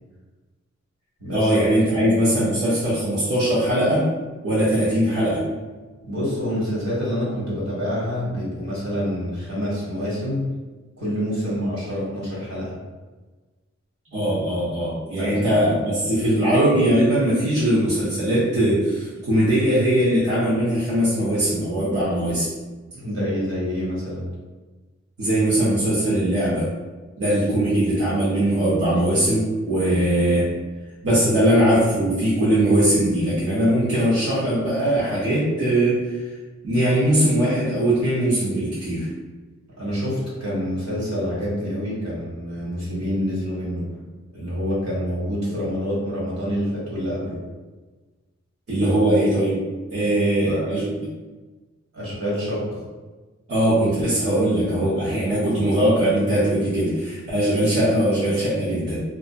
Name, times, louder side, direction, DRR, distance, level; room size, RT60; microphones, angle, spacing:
voice 1, 1.3-4.1 4.4-5.4 14.1-22.5 25.2-26.7 27.2-30.5 31.0-36.3 36.6-39.1 48.7-49.6 49.9-50.8 53.5-59.0, right 1 dB, 50° right, -10 dB, 0.8 m, -20 dB
voice 2, 6.0-10.4 11.0-12.7 15.2-15.4 22.9-24.3 39.8-43.8 44.3-47.4 50.0-50.1 50.5-50.7 51.9-52.8, equal, 65° right, -8 dB, 1.2 m, -27 dB
2.6 x 2.2 x 2.2 m, 1.3 s
wide cardioid pair, 70°, 29 cm